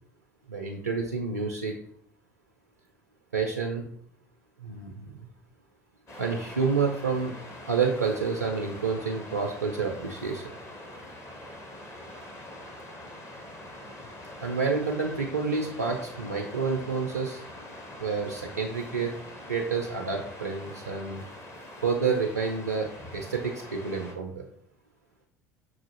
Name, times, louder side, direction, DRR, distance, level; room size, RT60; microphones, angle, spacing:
voice 1, 0.5-1.8 3.3-3.8 4.6-5.2 6.2-7.3 7.7-10.5 14.4-17.4 18.0-19.1 19.5-21.2 21.8-24.4, right 5 dB, 90° right, 2 dB, 0.4 m, -29 dB
Waves surf, 6.1-24.1, left 1 dB, 35° left, 1.0 m, -44 dB
6.1 x 2.4 x 2.9 m, 0.66 s
figure-of-eight pair, 60°, 8 cm